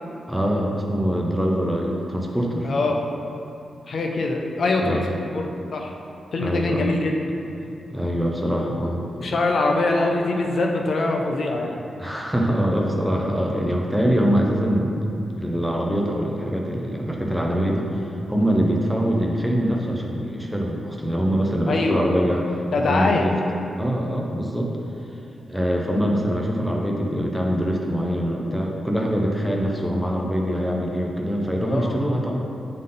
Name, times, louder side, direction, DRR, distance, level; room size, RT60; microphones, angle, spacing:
voice 1, 0.3-2.7 4.8-5.1 6.4-6.9 7.6-9.3 12.0-15.0 15.4-17.9 18.3-22.6 22.9-23.4 23.8-24.7 25.5-32.4, equal, ahead, -1 dB, 0.5 m, -23 dB
voice 2, 2.6-3.0 3.9-5.0 5.3-5.9 6.3-7.1 9.1-11.8 21.7-22.0 22.7-23.3 31.7-32.0, left 3 dB, 45° left, 1 dB, 0.5 m, -23 dB
8.0 x 3.7 x 3.8 m, 2.6 s
wide cardioid pair, 175°, 0 cm